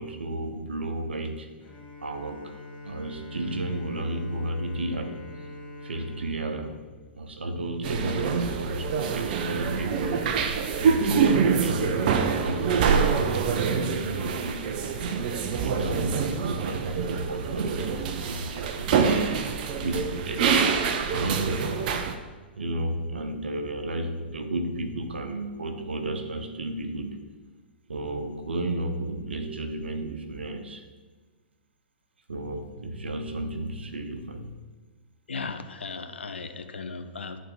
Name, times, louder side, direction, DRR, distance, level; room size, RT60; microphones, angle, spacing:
voice 1, 0.0-1.5 2.0-5.5 5.8-6.8 7.1-14.7 15.6-19.5 19.8-20.7 21.1-21.8 22.5-27.2 27.9-30.8 32.3-34.6, right 1 dB, 75° right, 6 dB, 0.9 m, -33 dB
Bowed string instrument, 1.6-7.6, left 1 dB, 25° left, 1.2 m, -44 dB
sound 1, 7.8-22.1, right 6 dB, 50° right, 0.7 m, -26 dB
voice 2, 35.3-37.4, left 4 dB, 75° left, 8 dB, 0.7 m, -36 dB
11.0 x 4.1 x 4.6 m, 1.4 s
figure-of-eight pair, 110°, 6 cm